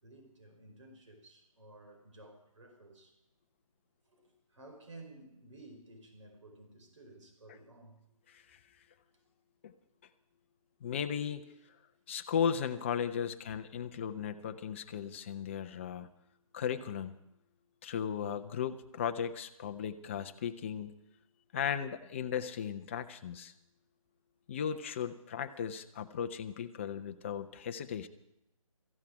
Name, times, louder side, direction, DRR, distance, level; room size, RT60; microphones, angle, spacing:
voice 1, 0.0-3.1 4.1-8.0, right 2 dB, 60° right, 4.6 m, -54 dB
voice 2, 8.3-8.6 9.6-9.7 10.8-11.4 12.1-16.1 16.5-17.1 17.8-21.0 21.5-23.5 24.5-28.1, left 8 dB, 20° left, 0.6 m, -36 dB
17.5 x 15.0 x 4.9 m
figure-of-eight pair, 155°, 18 cm